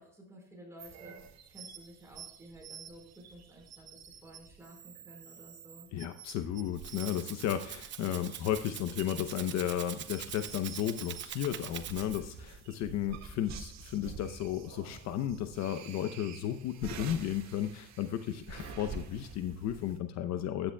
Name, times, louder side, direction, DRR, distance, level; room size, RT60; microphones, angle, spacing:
voice 1, 0.0-5.9, right 1 dB, 10° right, 0 dB, 4.6 m, -53 dB
sound 1, 0.8-20.0, right 6 dB, 50° right, 1.8 m, -49 dB
voice 2, 5.9-20.7, left 10 dB, 55° left, 9 dB, 0.8 m, -34 dB
Rattle (instrument), 6.5-12.4, right 9 dB, 35° right, 0.9 m, -44 dB
15.0 x 10.0 x 2.3 m, 0.64 s
cardioid pair, 145°, 34 cm